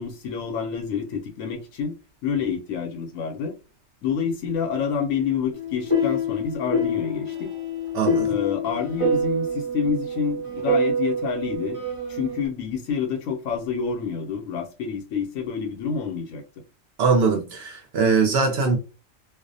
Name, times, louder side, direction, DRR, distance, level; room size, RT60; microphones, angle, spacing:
voice 1, 0.0-1.9 2.2-3.6 4.0-7.5 8.3-11.8 12.1-16.4, left 6 dB, 85° left, 1.0 m, -28 dB
sound 1, 5.5-12.4, equal, 25° right, 0.9 m, -26 dB
voice 2, 7.9-8.4 17.0-18.8, right 5 dB, 60° right, 0.7 m, -21 dB
2.4 x 2.0 x 2.6 m
omnidirectional pair, 1.3 m